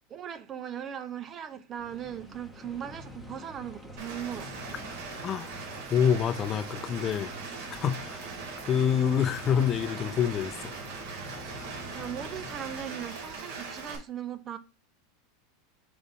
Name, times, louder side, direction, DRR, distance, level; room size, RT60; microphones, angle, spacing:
voice 1, 0.1-4.7 11.9-14.6, right 9 dB, 30° right, 0.7 m, -39 dB
sound 1, 1.8-13.1, equal, ahead, 1.1 m, -46 dB
Rain, 4.0-14.0, right 4 dB, 65° right, 2.8 m, -41 dB
voice 2, 5.9-7.3 7.7-8.2 8.7-10.7, left 8 dB, 30° left, 0.7 m, -26 dB
5.4 x 3.5 x 5.3 m
supercardioid pair, 120°, 0 cm